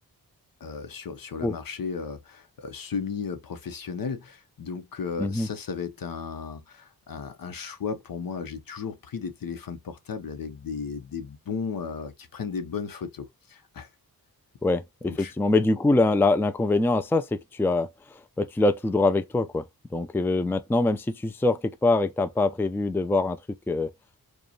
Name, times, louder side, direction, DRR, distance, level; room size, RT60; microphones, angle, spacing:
voice 1, 0.6-13.9 15.0-15.3, left 5 dB, 65° left, 1.0 m, -35 dB
voice 2, 14.6-17.9 18.4-19.7 19.9-23.4 23.7-23.9, left 2 dB, 5° left, 0.4 m, -24 dB
4.7 x 2.4 x 3.1 m
cardioid pair, 65°, 36 cm